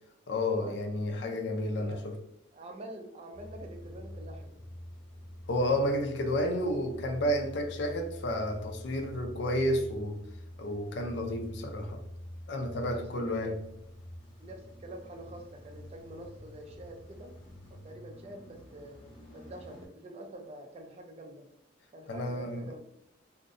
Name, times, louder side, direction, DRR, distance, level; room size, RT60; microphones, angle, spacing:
voice 1, 0.3-2.0 5.5-10.2 10.6-12.0 12.5-13.6 22.1-22.6, left 1 dB, 60° left, 0.4 m, -31 dB
voice 2, 2.5-4.6 12.8-13.5 14.4-17.3 17.7-19.0 19.3-21.5 21.9-22.8, right 1 dB, 30° right, 0.3 m, -46 dB
Car / Engine starting / Idling, 3.3-19.9, left 1 dB, 25° left, 0.7 m, -47 dB
2.6 x 2.1 x 2.4 m
head